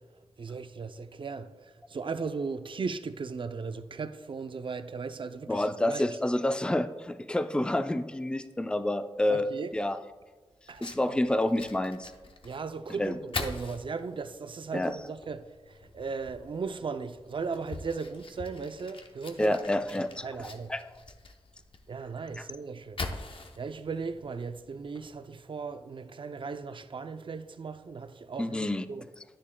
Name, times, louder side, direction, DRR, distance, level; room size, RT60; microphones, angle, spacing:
voice 1, 0.4-6.1 9.3-9.7 10.7-11.2 12.4-19.6 20.2-20.7 21.9-23.0 23.6-29.0, right 5 dB, 55° right, 0.5 m, -37 dB
voice 2, 5.5-9.5 9.7-10.0 10.8-12.1 13.0-13.1 14.7-15.0 19.4-20.9 22.4-22.5 28.4-28.8, left 1 dB, 10° left, 0.4 m, -28 dB
Fire, 10.7-25.3, left 3 dB, 60° left, 0.8 m, -44 dB
10.0 x 9.8 x 2.2 m
cardioid pair, 45°, 10 cm